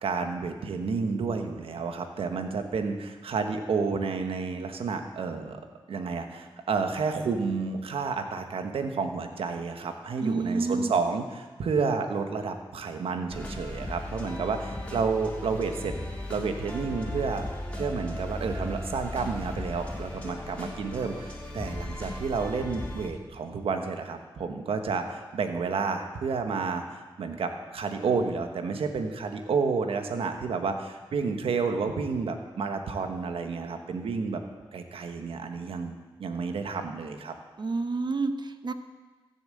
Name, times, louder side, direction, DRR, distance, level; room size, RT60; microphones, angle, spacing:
voice 1, 0.0-5.6 5.9-15.9 16.3-17.4 17.7-34.4 34.7-37.3, right 5 dB, 90° right, 6 dB, 1.2 m, -30 dB
voice 2, 10.2-10.9 37.6-38.7, right 3 dB, 50° right, 9 dB, 1.1 m, -29 dB
sound 1, 13.3-23.1, left 1 dB, 15° left, 3.4 m, -37 dB
15.0 x 7.1 x 7.7 m, 1.3 s
cardioid pair, 55°, 9 cm